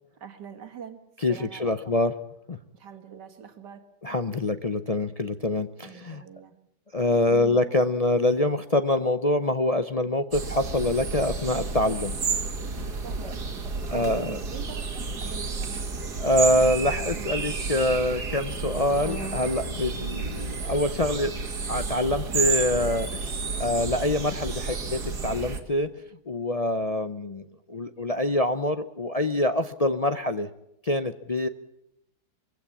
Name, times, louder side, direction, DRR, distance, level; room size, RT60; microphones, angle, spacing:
voice 1, 0.2-1.0 1.3-2.0 2.7-3.9 5.8-6.5 7.2-7.6 13.0-13.5 13.7-15.9, right 7 dB, 90° right, 7 dB, 2.4 m, -43 dB
voice 2, 1.2-2.2 2.5-2.6 4.0-6.2 6.9-12.2 12.6-12.9 13.9-14.4 16.2-21.3 21.7-26.0 26.3-30.5 30.8-31.5, left 1 dB, 40° left, 9 dB, 0.5 m, -25 dB
sound 1, 10.3-25.6, right 4 dB, 70° right, 2.6 m, -31 dB
23.5 x 16.0 x 8.5 m, 0.83 s
omnidirectional pair, 1.8 m